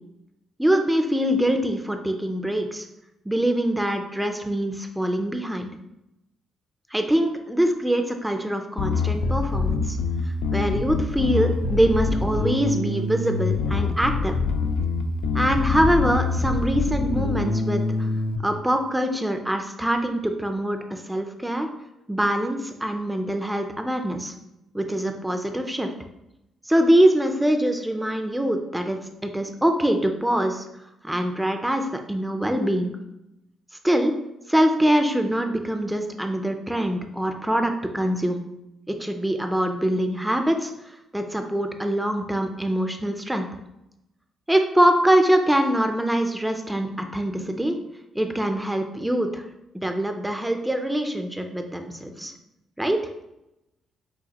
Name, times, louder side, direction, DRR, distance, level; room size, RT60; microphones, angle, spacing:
voice 1, 0.6-2.9 3.3-5.7 6.9-10.0 10.5-14.4 15.3-18.1 18.4-21.7 22.1-24.3 24.7-25.9 26.7-30.7 31.0-33.0 33.8-34.1 34.5-38.4 38.9-43.5 44.5-47.8 48.1-49.5 49.7-52.3 52.8-53.0, right 1 dB, 5° right, 5 dB, 0.5 m, -24 dB
Bass guitar, 8.8-18.4, left 4 dB, 80° left, 0.4 m, -25 dB
6.4 x 2.6 x 2.9 m, 0.88 s
cardioid pair, 90°, 0 cm